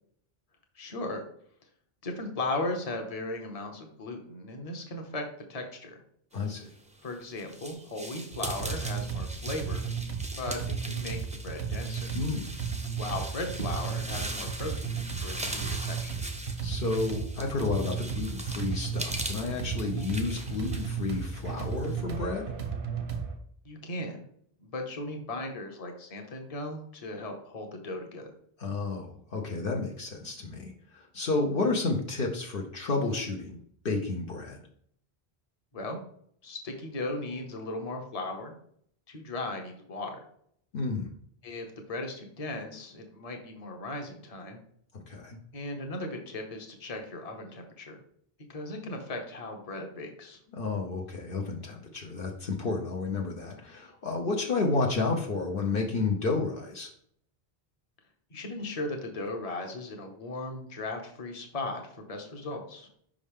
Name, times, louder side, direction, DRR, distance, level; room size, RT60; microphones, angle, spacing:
voice 1, 0.8-1.2 2.0-5.2 5.5-6.0 7.0-9.9 10.4-12.1 13.0-16.2 23.6-24.3 24.6-28.3 35.7-36.0 36.4-38.6 39.1-40.2 41.4-44.6 45.5-48.0 48.5-50.4 58.3-62.9, left 2 dB, 40° left, 3 dB, 1.0 m, -37 dB
voice 2, 6.3-6.7 12.1-12.5 16.6-22.4 28.6-33.6 33.8-34.6 40.7-41.1 45.1-45.4 50.5-56.9, left 3 dB, 60° left, 0 dB, 0.9 m, -31 dB
sound 1, 6.8-21.9, right 1 dB, 10° right, 0.5 m, -41 dB
sound 2, 8.3-23.4, right 6 dB, 80° right, 1.2 m, -34 dB
5.4 x 5.0 x 3.5 m, 0.65 s
omnidirectional pair, 1.0 m